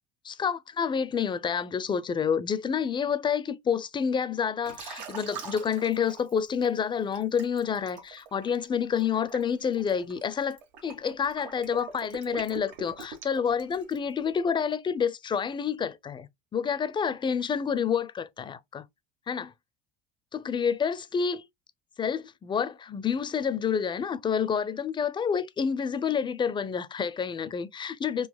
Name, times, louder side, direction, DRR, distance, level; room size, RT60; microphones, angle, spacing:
voice 1, 0.2-18.8 19.3-19.5 20.3-21.4 22.0-28.3, left 7 dB, 20° left, 0.4 m, -28 dB
Liquid, 4.6-6.7 7.1-14.1, right 5 dB, 85° right, 1.2 m, -43 dB
3.8 x 2.4 x 2.3 m
supercardioid pair, 95°, 21 cm